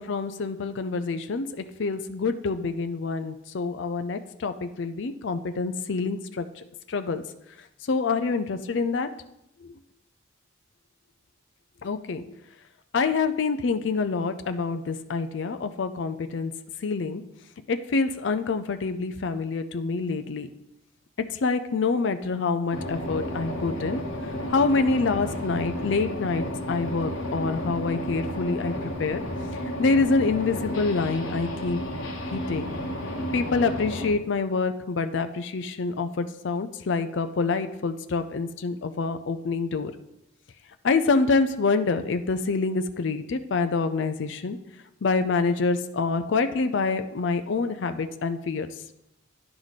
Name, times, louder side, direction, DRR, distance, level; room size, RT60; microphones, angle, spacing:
voice 1, 0.0-1.5 1.8-6.5 6.9-7.2 7.9-9.1 9.6-9.7 11.8-12.3 12.9-16.5 16.8-17.2 17.7-20.5 21.4-24.0 24.5-28.7 29.0-29.2 29.8-31.8 32.3-32.7 33.3-39.9 40.8-44.6 45.0-48.7, left 4 dB, 65° left, 9 dB, 0.5 m, -26 dB
sound 1, 22.7-34.1, equal, 85° left, 1.2 m, -32 dB
10.0 x 4.8 x 4.1 m, 0.85 s
head